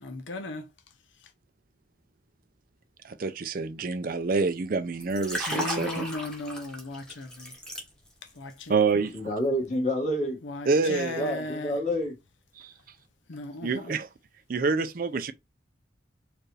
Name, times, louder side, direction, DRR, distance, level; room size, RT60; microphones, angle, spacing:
voice 1, 0.0-0.7 5.5-7.5 8.4-8.7 10.4-11.7 13.3-13.9, left 2 dB, 80° left, 0.7 m, -36 dB
voice 2, 3.0-6.1 8.7-9.3 10.7-11.2 12.6-12.7 13.6-14.1 14.5-15.3, right 4 dB, 50° right, 0.4 m, -27 dB
Liquid, 5.0-8.3 8.6-8.9, equal, 5° left, 1.1 m, -35 dB
voice 3, 9.1-10.4 10.9-12.1, equal, 35° left, 1.9 m, -28 dB
4.6 x 2.5 x 3.2 m
head